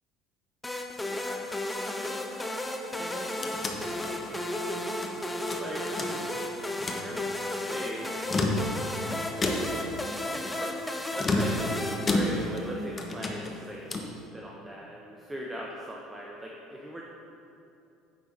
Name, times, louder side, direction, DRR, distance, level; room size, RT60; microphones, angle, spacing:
sound 1, 0.6-12.8, left 1 dB, 10° left, 0.7 m, -34 dB
voice 1, 1.0-1.8 3.0-3.6 4.0-4.5 5.6-5.8 7.0-8.5 9.6-9.7 10.3-10.8 11.1-13.9 14.3-17.1, right 1 dB, 15° right, -2 dB, 1.0 m, -40 dB
sound 2, 2.9-5.1 5.5-6.4 6.7-7.1 8.1-9.0 9.4-9.9 11.2-12.7 13.0-14.2, left 2 dB, 30° left, 1.0 m, -31 dB
9.5 x 6.0 x 4.3 m, 2.8 s
figure-of-eight pair, 65°, 0 cm